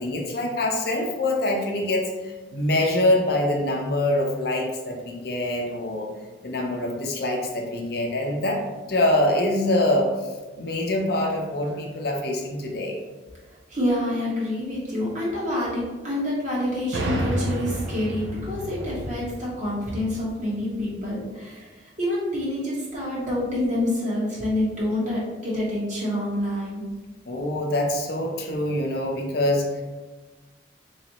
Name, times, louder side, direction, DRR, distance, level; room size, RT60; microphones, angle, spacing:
voice 1, 0.0-6.1 6.4-8.6 8.9-10.1 10.6-13.0 27.3-29.8, left 1 dB, 55° left, 1 dB, 0.6 m, -24 dB
voice 2, 13.7-21.7 22.0-26.8, left 1 dB, 40° right, -6 dB, 1.3 m, -27 dB
sound 1, 16.9-20.6, right 1 dB, 80° right, 0.6 m, -30 dB
4.0 x 3.1 x 2.9 m, 1.2 s
head